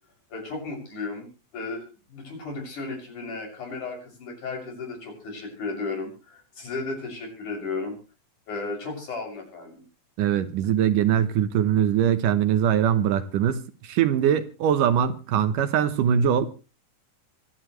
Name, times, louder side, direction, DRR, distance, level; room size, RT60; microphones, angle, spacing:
voice 1, 0.3-1.3 1.5-7.9 8.5-9.8, left 3 dB, 60° left, 8.3 m, -34 dB
voice 2, 10.2-16.5, right 9 dB, 75° right, 2.6 m, -22 dB
27.0 x 11.5 x 3.2 m
omnidirectional pair, 3.9 m